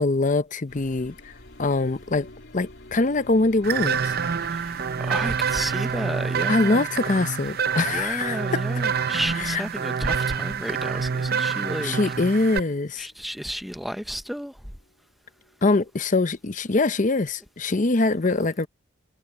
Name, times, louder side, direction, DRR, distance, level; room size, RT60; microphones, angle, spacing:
voice 1, 0.0-1.3 1.6-2.3 2.5-4.1 6.5-8.6 9.5-9.6 11.8-13.1 15.6-18.7, left 3 dB, 40° left, 0.7 m, -23 dB
sound 1, 0.7-16.5 16.8-17.5, left 1 dB, 60° left, 3.5 m, -50 dB
sound 2, 3.6-12.6, right 6 dB, 50° right, 0.6 m, -27 dB
voice 2, 4.5-6.9 7.9-12.1 13.0-14.6, equal, ahead, 0.8 m, -32 dB
head